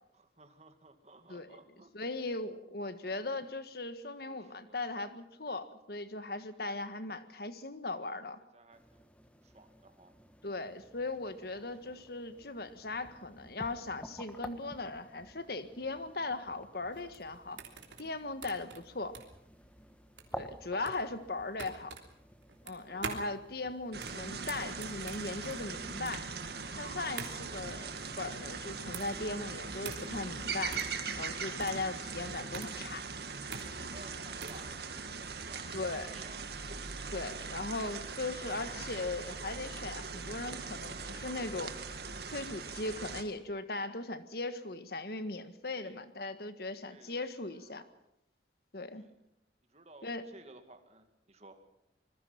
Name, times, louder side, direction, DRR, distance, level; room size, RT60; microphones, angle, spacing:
voice 1, 0.2-1.9 3.0-3.4 4.2-4.8 8.5-9.0 9.4-10.1 11.5-12.0 22.8-23.2 33.8-36.4 45.7-46.0 46.9-47.2 47.5-48.0 48.9-49.1 49.7-51.6, right 2 dB, 35° right, 7 dB, 2.3 m, -57 dB
voice 2, 1.9-8.4 10.4-17.6 18.0-19.2 20.3-21.9 22.6-26.3 26.7-27.9 28.2-30.8 31.2-33.0 35.7-36.1 37.1-41.8 42.3-47.8 48.7-49.1 50.0-50.2, left 2 dB, 60° left, 11 dB, 1.6 m, -38 dB
sound 1, 8.7-25.8, equal, 5° left, 1.3 m, -52 dB
sound 2, 16.9-34.7, right 5 dB, 90° right, 3.3 m, -46 dB
sound 3, 23.9-43.2, right 5 dB, 60° right, 2.0 m, -40 dB
25.5 x 21.0 x 5.9 m, 0.79 s
head